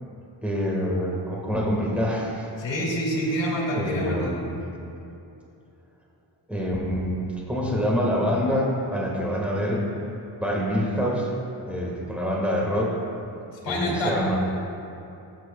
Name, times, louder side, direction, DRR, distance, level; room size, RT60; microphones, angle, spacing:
voice 1, 0.4-2.5 3.7-4.5 6.5-9.9 10.4-11.3 11.7-13.0 13.7-14.4, equal, 5° right, -3 dB, 1.4 m, -26 dB
voice 2, 2.6-4.3 13.6-14.2, equal, 85° left, -2 dB, 2.0 m, -27 dB
13.5 x 7.5 x 2.2 m, 2.9 s
wide cardioid pair, 125°, 43 cm